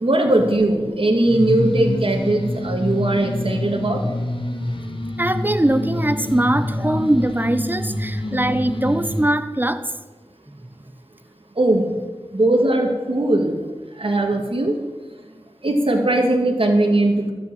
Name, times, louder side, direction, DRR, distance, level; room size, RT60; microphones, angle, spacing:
voice 1, 0.0-4.0 11.6-11.9 12.3-13.6 14.0-14.7 15.6-17.3, right 1 dB, 65° right, 2 dB, 2.1 m, -19 dB
sound 1, 1.3-9.3, left 1 dB, 55° left, 1.5 m, -26 dB
voice 2, 5.2-9.9, right 1 dB, 20° right, 11 dB, 1.0 m, -21 dB
12.5 x 7.0 x 9.0 m, 1.3 s
wide cardioid pair, 40°, 10 cm